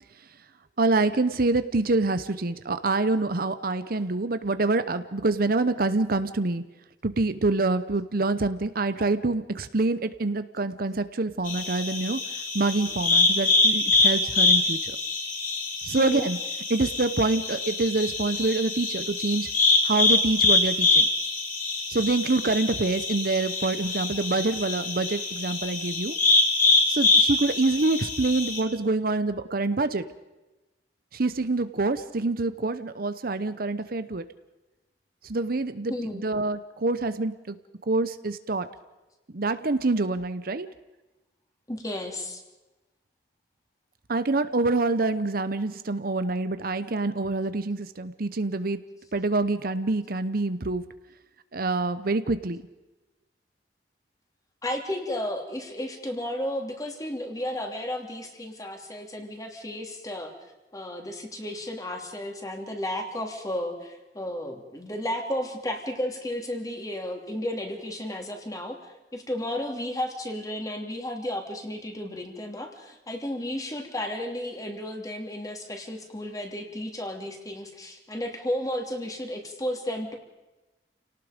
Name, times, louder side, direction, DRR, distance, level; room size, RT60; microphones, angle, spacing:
voice 1, 0.8-6.6 7.0-12.2 12.5-14.9 15.8-16.4 16.7-19.5 19.8-21.1 21.9-26.1 26.9-30.0 31.1-34.2 35.2-37.6 37.9-38.7 39.3-40.7 44.1-48.8 49.1-50.8 51.5-52.6, right 3 dB, 55° right, 11 dB, 0.9 m, -26 dB
sound 1, 11.4-28.6, left 3 dB, 50° left, 5.2 m, -24 dB
voice 2, 16.0-16.3 35.9-36.2 41.7-42.4 54.6-60.3 60.7-80.2, left 1 dB, 20° left, 3 dB, 3.1 m, -33 dB
29.0 x 18.5 x 5.2 m, 1.1 s
head